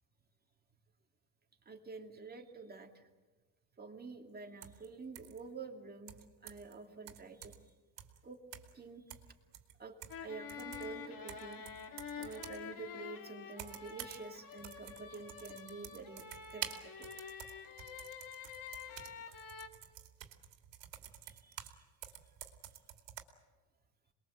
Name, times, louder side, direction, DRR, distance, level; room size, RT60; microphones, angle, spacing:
voice 1, 1.6-3.1 3.8-7.6 8.2-8.4 8.7-9.2 9.8-9.9 10.2-11.8 12.2-16.2 16.5-17.3 19.3-19.5 21.2-21.8, right 4 dB, 20° right, 3 dB, 2.6 m, -49 dB
sound 1, 4.6-4.9 5.1-5.4 6.1-6.7 7.1-7.7 8.0-8.2 8.5-8.8 9.1-10.2 10.5-12.6 13.5-14.2 14.5-21.8 22.0-23.2, right 11 dB, 80° right, 2.8 m, -49 dB
sound 2, 10.1-19.7, left 6 dB, 50° left, 2.5 m, -48 dB
27.5 x 21.5 x 7.9 m, 1.3 s
cardioid pair, 140°, 42 cm